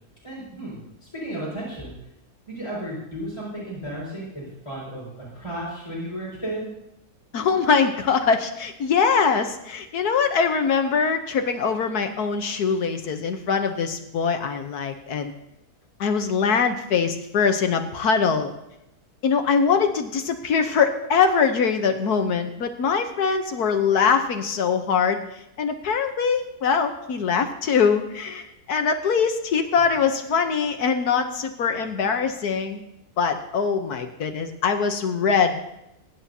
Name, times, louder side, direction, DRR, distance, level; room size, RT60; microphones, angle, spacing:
voice 1, 0.2-1.9 2.5-6.7, right 1 dB, 20° left, -8 dB, 5.2 m, -34 dB
voice 2, 7.3-15.3 16.0-18.5 19.2-25.2 25.6-32.8 33.2-35.6, left 6 dB, 80° left, 6 dB, 1.5 m, -22 dB
22.5 x 11.0 x 2.8 m, 0.86 s
omnidirectional pair, 1.7 m